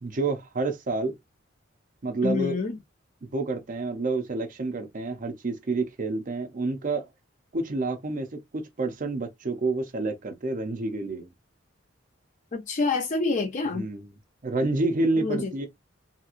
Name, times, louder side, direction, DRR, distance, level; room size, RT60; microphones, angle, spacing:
voice 1, 0.0-1.1 2.0-2.6 3.3-7.1 7.5-11.3 13.7-14.1 14.4-15.7, right 3 dB, 45° right, 0.6 m, -28 dB
voice 2, 2.2-2.8 12.5-13.8 15.2-15.5, left 3 dB, 40° left, 0.5 m, -27 dB
2.8 x 2.8 x 2.4 m
head